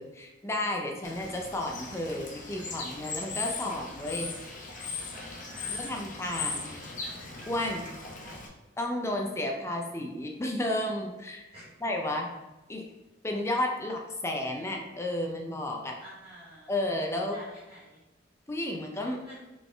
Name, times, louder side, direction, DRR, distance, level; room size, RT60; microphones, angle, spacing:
voice 1, 0.0-4.3 5.7-6.7 7.5-7.9 8.8-11.4 11.8-12.3 12.7-12.8 13.2-16.0 16.7-17.4 18.5-19.2, left 1 dB, 15° left, 1 dB, 0.4 m, -32 dB
Bird / Water, 1.0-8.5, left 4 dB, 45° left, 0.8 m, -38 dB
voice 2, 5.1-6.0 8.2-8.4 9.5-9.6 11.5-11.6 16.0-16.7 17.3-18.0 19.0-19.4, right 1 dB, 30° right, -11 dB, 1.3 m, -49 dB
4.0 x 3.7 x 3.3 m, 1.0 s
head